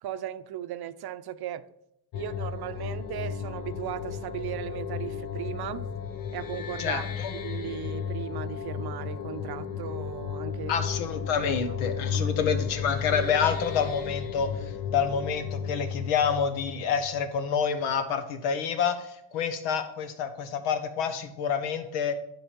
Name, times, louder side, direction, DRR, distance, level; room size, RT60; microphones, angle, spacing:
voice 1, 0.0-1.7 2.1-5.9 6.3-7.0 7.4-10.7 11.4-11.5 12.1-12.3, right 11 dB, 50° right, 0.7 m, -37 dB
sound 1, 2.1-17.6, left 7 dB, 45° left, 0.9 m, -34 dB
voice 2, 6.8-7.3 10.7-22.1, left 6 dB, 85° left, 1.3 m, -28 dB
10.5 x 3.6 x 7.3 m
supercardioid pair, 90°, 49 cm